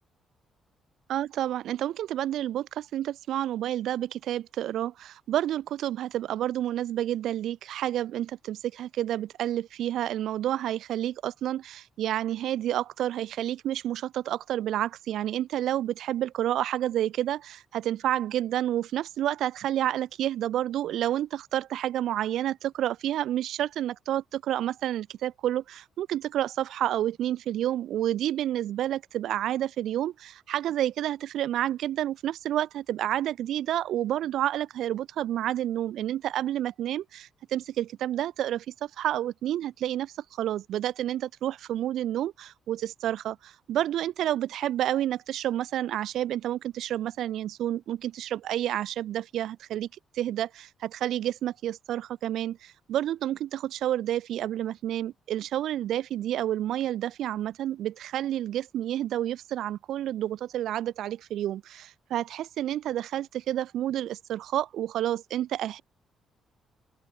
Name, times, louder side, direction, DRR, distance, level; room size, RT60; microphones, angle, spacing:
voice 1, 1.1-49.9 50.1-65.8, right 12 dB, 75° right, 0.4 m, -29 dB
open air
cardioid pair, 90°, 0 cm